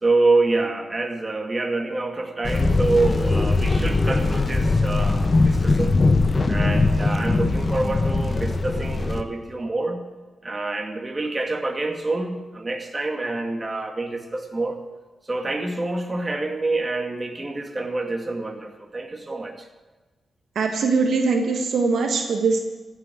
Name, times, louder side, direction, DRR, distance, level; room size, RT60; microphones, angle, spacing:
voice 1, 0.0-6.0 6.5-10.1 10.4-14.8 15.3-19.7, right 3 dB, 30° right, 5 dB, 2.1 m, -26 dB
sound 1, 2.4-9.2, left 3 dB, 40° left, 1.3 m, -21 dB
voice 2, 20.5-22.6, right 4 dB, 75° right, 4 dB, 1.5 m, -21 dB
14.5 x 7.8 x 9.5 m, 1.2 s
supercardioid pair, 50°, 0 cm